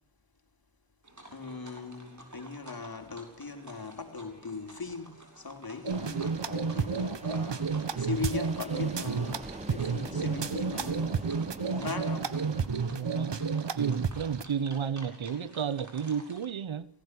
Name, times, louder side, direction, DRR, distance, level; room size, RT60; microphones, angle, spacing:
sound 1, 1.0-16.5, right 1 dB, 40° right, 7.3 m, -53 dB
voice 1, 1.3-9.4 9.7-11.4 11.6-12.4, left 4 dB, 50° left, 4.6 m, -39 dB
sound 2, 5.8-14.4, right 5 dB, 65° right, 1.7 m, -31 dB
Ocean, 5.9-12.7, right 1 dB, 15° right, 3.0 m, -45 dB
voice 2, 13.0-13.4 13.8-16.9, right 7 dB, 85° right, 1.2 m, -32 dB
20.5 x 17.5 x 8.1 m
cardioid pair, 40°, 46 cm